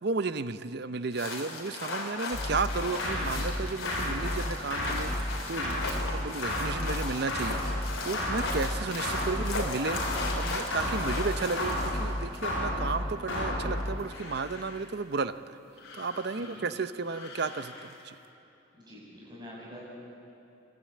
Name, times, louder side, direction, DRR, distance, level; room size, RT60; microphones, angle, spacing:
voice 1, 0.0-15.6 15.9-18.1, right 4 dB, 55° right, 12 dB, 0.6 m, -33 dB
sound 1, 1.1-12.4 13.8-14.9 15.8-16.7 17.1-18.0, left 3 dB, 85° left, 3.5 m, -38 dB
sound 2, 2.3-14.1, left 1 dB, 70° left, 7.4 m, -32 dB
voice 2, 16.3-16.6 18.7-19.8, left 1 dB, 20° right, -6 dB, 7.0 m, -46 dB
28.0 x 12.5 x 8.6 m, 2.8 s
head